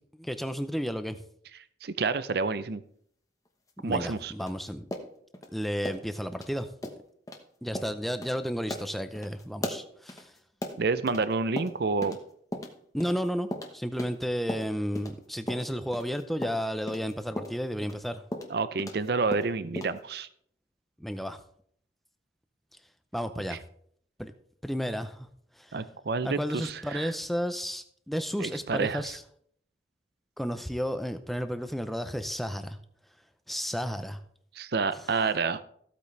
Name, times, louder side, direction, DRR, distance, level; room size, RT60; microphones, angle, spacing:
voice 1, 0.2-1.2 3.8-4.8 5.5-6.7 7.6-10.3 12.9-18.2 21.0-21.4 23.1-23.6 24.2-24.3 24.6-25.3 25.6-25.7 26.2-29.2 30.4-32.8 33.5-34.2, equal, ahead, 9 dB, 0.6 m, -32 dB
voice 2, 1.8-2.8 3.8-4.3 10.8-12.2 18.5-20.3 23.4-23.6 25.7-27.1 28.4-29.0 34.6-35.6, right 4 dB, 60° right, 14 dB, 0.5 m, -29 dB
sound 1, 3.9-5.5 5.8-6.1 6.3-6.5 6.8-7.0 7.3-7.4 7.7-7.9 8.2-8.4 8.7-11.2 11.6-12.2 12.5-15.1 15.5-19.1 19.3-20.0, left 1 dB, 20° left, 1.1 m, -37 dB
15.0 x 8.4 x 3.3 m, 0.64 s
head